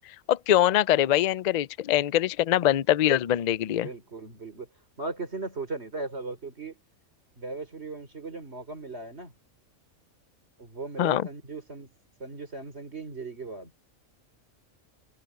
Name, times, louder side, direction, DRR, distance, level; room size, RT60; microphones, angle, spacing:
voice 1, 0.3-3.9 11.0-11.3, left 12 dB, 80° left, 0.3 m, -23 dB
voice 2, 3.6-4.7 5.0-6.8 7.4-9.3 10.6-11.9 12.2-13.7, right 3 dB, 55° right, 4.4 m, -37 dB
omnidirectional pair, 1.3 m